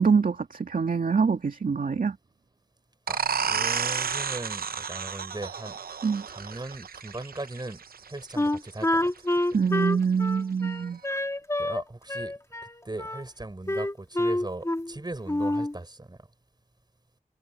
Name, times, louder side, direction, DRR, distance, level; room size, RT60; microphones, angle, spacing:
voice 1, 0.0-2.2 6.0-6.3 9.5-11.0, right 5 dB, 65° right, 2.2 m, -24 dB
voice 2, 3.1-5.7 6.3-9.3 11.6-12.4 12.8-16.2, right 2 dB, 30° right, 6.9 m, -38 dB
sound 1, 3.1-8.5, right 6 dB, 85° right, 0.7 m, -31 dB
Wind instrument woodwind instrument, 8.4-11.8 12.1-13.2 13.7-15.0 15.3-15.7, left 1 dB, 20° left, 3.3 m, -27 dB
wide cardioid pair, 75°, 15 cm